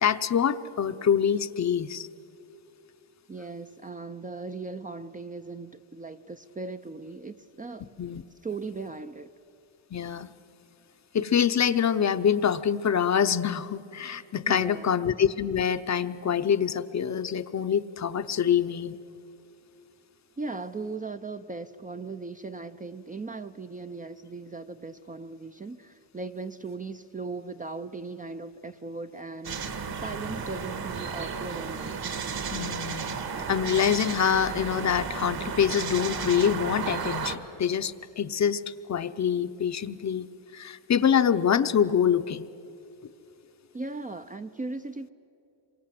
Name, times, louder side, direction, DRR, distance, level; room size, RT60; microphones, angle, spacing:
voice 1, 0.0-2.1 8.0-8.2 9.9-10.3 11.1-19.0 32.5-33.2 33.5-40.3 40.5-42.5, left 8 dB, 40° left, 11 dB, 0.7 m, -25 dB
voice 2, 3.3-7.9 8.4-9.3 14.5-14.9 20.4-31.9 43.7-45.1, right 3 dB, 20° right, 8 dB, 0.5 m, -38 dB
sound 1, 29.5-37.4, right 5 dB, 55° right, 1.9 m, -33 dB
27.0 x 24.0 x 7.6 m, 2.9 s
cardioid pair, 135°, 45 cm